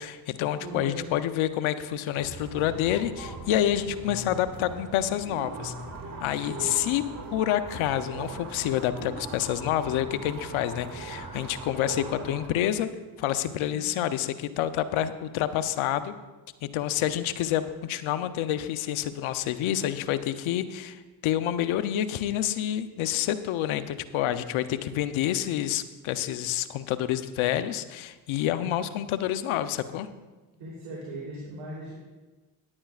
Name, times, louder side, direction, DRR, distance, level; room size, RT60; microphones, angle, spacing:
voice 1, 0.0-5.7 6.2-7.0 7.3-12.9 13.2-16.2 16.6-30.1, left 11 dB, 75° left, 12 dB, 0.8 m, -28 dB
voice 2, 0.5-1.0 6.3-6.9 28.6-28.7 30.6-31.9, right 2 dB, 85° right, -6 dB, 3.3 m, -38 dB
sound 1, 2.2-12.5, right 2 dB, 45° right, 2.2 m, -40 dB
17.0 x 10.5 x 2.4 m, 1.2 s
hypercardioid pair, 50°, 48 cm